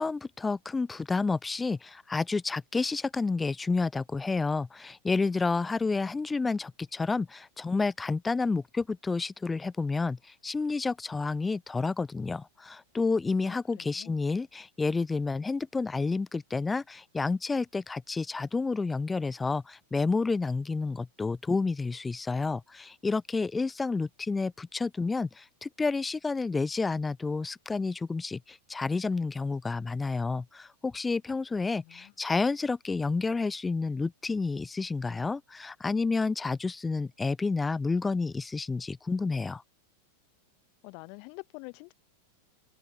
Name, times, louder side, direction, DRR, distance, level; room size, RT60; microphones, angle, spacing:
voice 1, 0.0-39.6, left 4 dB, 15° left, 1.1 m, -30 dB
voice 2, 13.4-14.2 31.8-32.1 40.8-41.9, left 38 dB, 55° left, 6.2 m, -47 dB
open air
hypercardioid pair, 110°, 0 cm